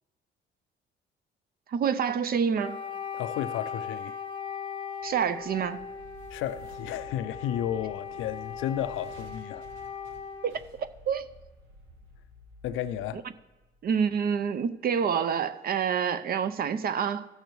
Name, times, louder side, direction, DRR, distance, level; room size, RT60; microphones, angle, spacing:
voice 1, 1.7-2.8 5.0-5.8 10.4-11.2 13.8-17.3, right 7 dB, 50° right, 0.5 m, -27 dB
Wind instrument woodwind instrument, 2.6-10.6, left 7 dB, 25° left, 0.9 m, -38 dB
voice 2, 3.1-4.2 6.3-9.6 12.6-13.2, left 11 dB, 90° left, 0.4 m, -33 dB
sound 1, 5.0-14.2, right 1 dB, 80° right, 1.4 m, -52 dB
15.0 x 6.5 x 3.1 m
cardioid pair, 90°, 20 cm